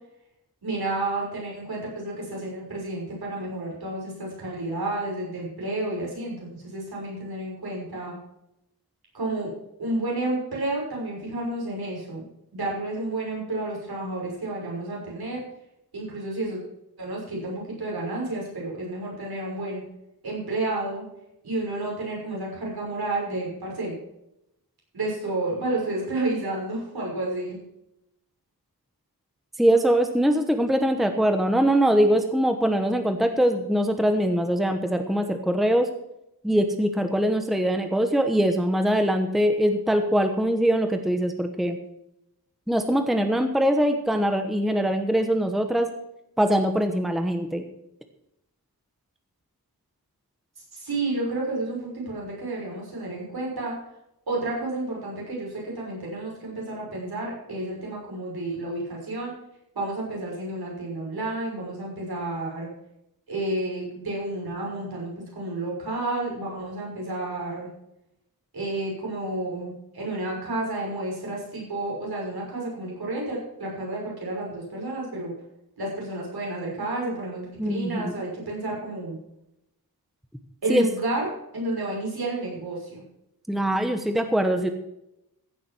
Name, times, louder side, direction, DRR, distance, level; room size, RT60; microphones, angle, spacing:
voice 1, 0.6-8.1 9.1-9.5 9.8-12.2 12.5-15.4 15.9-16.6 17.0-19.8 20.2-21.0 21.4-23.9 24.9-27.6 50.7-53.7 54.3-59.3 59.7-62.7 63.3-67.7 68.5-75.3 75.8-79.1 80.6-81.3 81.5-83.0, right 2 dB, 75° right, -3 dB, 6.0 m, -31 dB
voice 2, 29.6-35.9 36.4-41.8 42.7-45.9 46.4-47.6 77.6-78.1 80.7-80.9 83.5-84.7, right 1 dB, ahead, 6 dB, 1.0 m, -22 dB
15.0 x 7.3 x 6.0 m, 0.83 s
wide cardioid pair, 125°, 38 cm